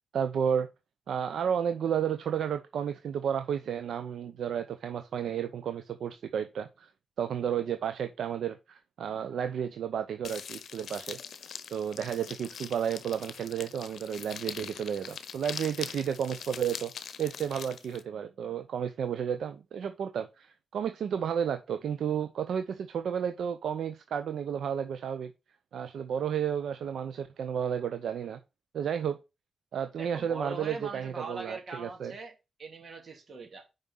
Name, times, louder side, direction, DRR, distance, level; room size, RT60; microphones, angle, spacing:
voice 1, 0.1-0.7 1.1-6.9 7.2-11.2 11.7-16.9 17.2-25.3 25.7-28.4 28.7-29.2 29.7-32.1, right 8 dB, 80° right, 0.7 m, -32 dB
sound 1, 10.2-18.0, left 7 dB, 75° left, 0.8 m, -42 dB
voice 2, 30.0-32.3 32.6-33.7, right 3 dB, 55° right, 3.0 m, -41 dB
5.5 x 5.3 x 6.2 m
supercardioid pair, 50°, 0 cm